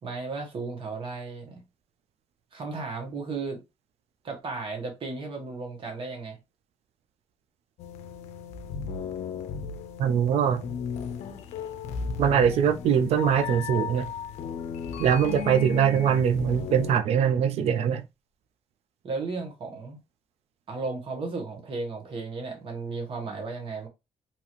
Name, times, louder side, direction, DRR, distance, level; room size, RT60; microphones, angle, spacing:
voice 1, 0.0-1.6 2.5-3.6 4.2-6.4 15.6-15.9 19.0-20.0 20.7-23.9, right 3 dB, 50° right, 1.1 m, -34 dB
sound 1, 7.8-16.9, left 6 dB, 85° left, 0.4 m, -35 dB
voice 2, 10.0-10.6 12.2-14.1 15.0-18.0, right 8 dB, 70° right, 0.5 m, -22 dB
2.9 x 2.4 x 2.9 m
cardioid pair, 85°, 11 cm